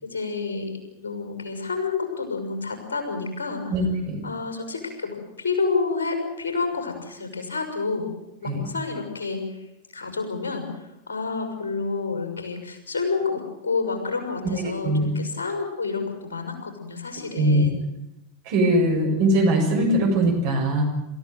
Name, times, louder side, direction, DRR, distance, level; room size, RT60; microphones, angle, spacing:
voice 1, 0.0-3.7 4.2-8.1 8.4-9.4 9.9-10.7 11.1-17.8, left 4 dB, 65° left, 6 dB, 6.5 m, -29 dB
voice 2, 3.7-4.2 8.5-8.7 14.5-15.1 17.3-17.7 18.5-20.8, right 1 dB, 45° right, 3 dB, 7.0 m, -21 dB
28.0 x 15.0 x 9.4 m, 0.91 s
figure-of-eight pair, 90°, 0 cm